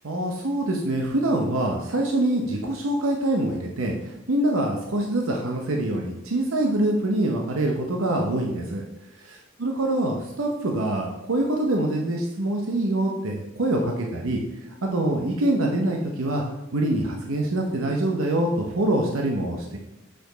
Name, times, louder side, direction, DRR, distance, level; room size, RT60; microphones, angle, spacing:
voice 1, 0.0-8.8 9.2-14.4 14.8-16.4 16.7-19.8, right 1 dB, 80° right, 1 dB, 0.8 m, -25 dB
6.8 x 5.1 x 3.9 m, 0.91 s
head